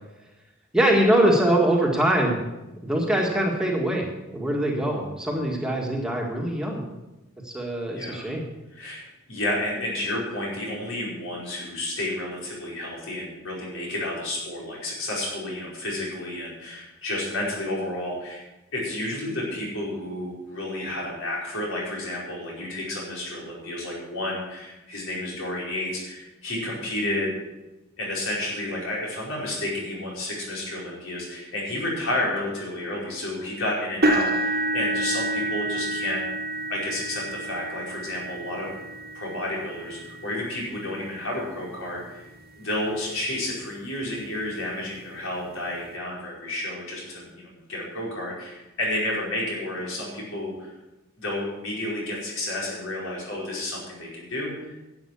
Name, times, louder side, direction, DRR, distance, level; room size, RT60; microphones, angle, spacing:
voice 1, 0.7-2.4 2.8-4.1 4.3-6.8 7.4-8.4, right 1 dB, 5° right, -1 dB, 1.8 m, -23 dB
voice 2, 7.9-8.3 8.7-9.0 9.3-18.4 18.7-27.3 28.0-36.3 36.7-38.7 39.1-42.3 42.6-47.4 47.7-50.7 51.2-54.8, left 1 dB, 75° left, -4 dB, 4.9 m, -31 dB
sound 1, 34.0-42.1 42.7-42.9 43.4-43.5 44.9-45.0, right 1 dB, 50° right, 1.4 m, -29 dB
11.5 x 8.0 x 7.0 m, 1.0 s
head